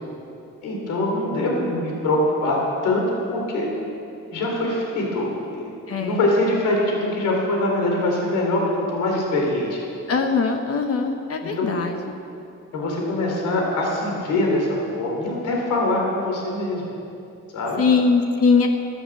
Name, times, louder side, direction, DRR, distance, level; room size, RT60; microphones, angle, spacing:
voice 1, 0.6-3.7 4.3-5.7 6.0-9.8 11.4-11.8 12.7-16.9 17.5-17.8, left 1 dB, 85° left, -1 dB, 3.5 m, -23 dB
voice 2, 5.9-6.2 10.1-11.9 17.8-18.7, left 4 dB, 50° left, 4 dB, 1.1 m, -21 dB
12.5 x 12.5 x 7.8 m, 2.6 s
cardioid pair, 90°, 30 cm